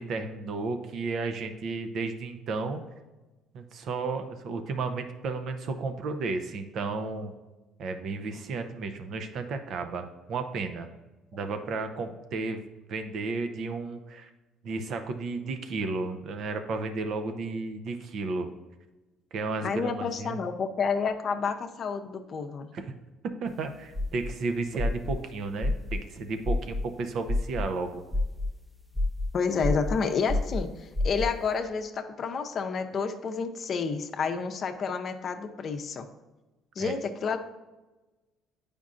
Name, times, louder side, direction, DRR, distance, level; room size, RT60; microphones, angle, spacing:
voice 1, 0.0-2.8 3.5-7.3 7.8-10.9 11.3-12.6 12.9-14.3 14.6-18.5 19.3-20.4 22.7-22.9 23.4-28.0 36.8-37.0, right 3 dB, 60° right, 7 dB, 0.6 m, -33 dB
voice 2, 19.6-22.7 29.3-36.1 36.8-37.4, left 5 dB, 50° left, 6 dB, 0.6 m, -30 dB
sound 1, 23.5-31.6, left 2 dB, 5° right, 0.7 m, -30 dB
8.2 x 5.1 x 2.5 m, 1.1 s
supercardioid pair, 75°, 0 cm